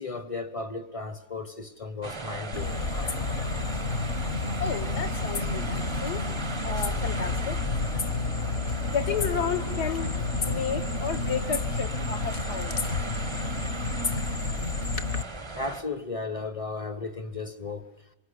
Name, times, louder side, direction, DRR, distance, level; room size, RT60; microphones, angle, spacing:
voice 1, 0.0-2.8 15.5-17.9, left 3 dB, 20° left, 1.0 m, -35 dB
sound 1, 2.0-15.8, right 3 dB, 20° right, 0.9 m, -38 dB
sound 2, 2.5-15.2, left 3 dB, 40° left, 1.6 m, -30 dB
voice 2, 4.6-6.2 6.6-7.6 8.8-10.1 10.4-12.8, left 6 dB, 65° left, 2.2 m, -32 dB
26.0 x 24.5 x 8.4 m
omnidirectional pair, 1.9 m